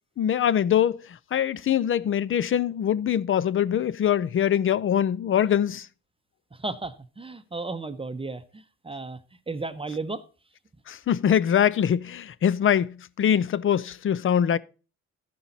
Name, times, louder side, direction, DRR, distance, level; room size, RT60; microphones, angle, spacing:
voice 1, 0.2-5.9 10.9-14.6, left 9 dB, 45° left, 0.5 m, -23 dB
voice 2, 6.5-9.2 9.5-10.2, right 3 dB, 20° right, 0.7 m, -34 dB
13.5 x 5.7 x 4.0 m
cardioid pair, 90°, 30 cm